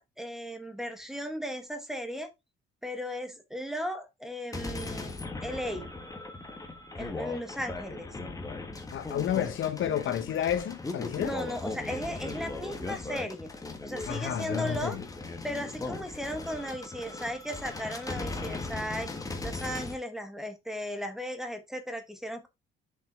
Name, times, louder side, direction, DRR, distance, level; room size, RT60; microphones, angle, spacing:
voice 1, 0.0-2.3 2.8-5.9 7.0-8.1 11.2-13.5 13.8-15.0 15.4-19.1 19.4-22.5, equal, ahead, 1.4 m, -36 dB
sound 1, 4.5-20.0, left 3 dB, 15° left, 1.5 m, -38 dB
voice 2, 8.9-11.3 14.1-15.0, left 9 dB, 70° left, 1.2 m, -30 dB
7.0 x 5.4 x 3.4 m
cardioid pair, 145°, 21 cm